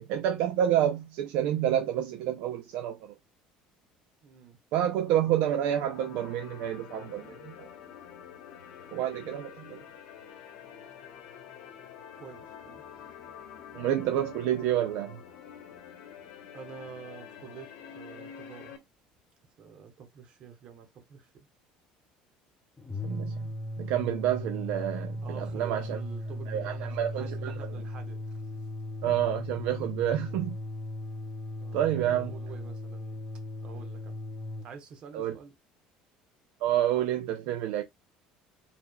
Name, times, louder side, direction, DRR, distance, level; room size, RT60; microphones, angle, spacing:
voice 1, 0.0-3.1 4.7-7.7 8.9-9.8 13.7-15.2 23.0-26.0 26.5-27.5 29.0-30.5 31.7-32.3 35.1-35.4 36.6-37.8, right 11 dB, 65° right, 0.6 m, -29 dB
voice 2, 4.2-4.6 12.1-12.8 16.5-17.7 17.9-18.7 19.6-21.3 25.2-28.6 31.6-33.2 33.6-34.2 34.6-35.5, right 7 dB, 40° right, 1.2 m, -48 dB
sound 1, 5.1-18.8, left 8 dB, 70° left, 1.2 m, -47 dB
sound 2, 22.8-34.7, equal, 10° left, 0.5 m, -37 dB
4.8 x 3.5 x 2.3 m
cardioid pair, 170°, 3 cm